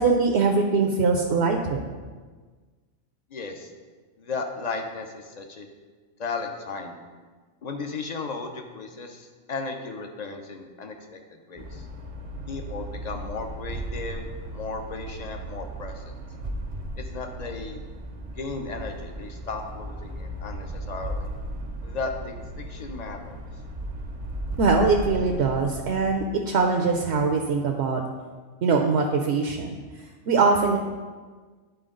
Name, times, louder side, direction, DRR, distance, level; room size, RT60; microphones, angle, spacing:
voice 1, 0.0-1.8 24.6-28.0 28.6-29.8 30.3-30.8, right 4 dB, 70° right, 3 dB, 0.9 m, -22 dB
voice 2, 3.3-3.7 4.2-5.7 6.2-6.9 7.6-11.9 12.5-14.2 14.5-16.2 17.0-17.8 18.4-21.3 21.8-23.4, left 4 dB, 45° left, 4 dB, 0.7 m, -35 dB
sound 1, 11.6-26.2, right 1 dB, 40° right, 0.6 m, -36 dB
10.5 x 4.4 x 3.8 m, 1.4 s
omnidirectional pair, 1.2 m